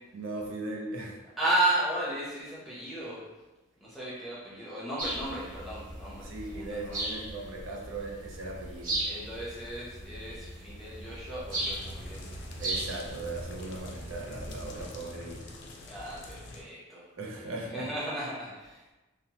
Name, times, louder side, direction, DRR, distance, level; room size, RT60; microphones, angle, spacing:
voice 1, 0.1-1.2 6.2-9.0 12.6-15.5 17.2-17.9, right 2 dB, 70° right, -1 dB, 0.5 m, -38 dB
voice 2, 1.4-3.3 3.8-7.1 9.1-12.3 15.9-18.8, right 1 dB, ahead, -8 dB, 0.7 m, -34 dB
sound 1, 5.0-14.9, right 1 dB, 40° right, 0.8 m, -38 dB
sound 2, 11.5-16.6, left 2 dB, 55° left, 0.4 m, -46 dB
2.9 x 2.0 x 2.8 m, 1.1 s
head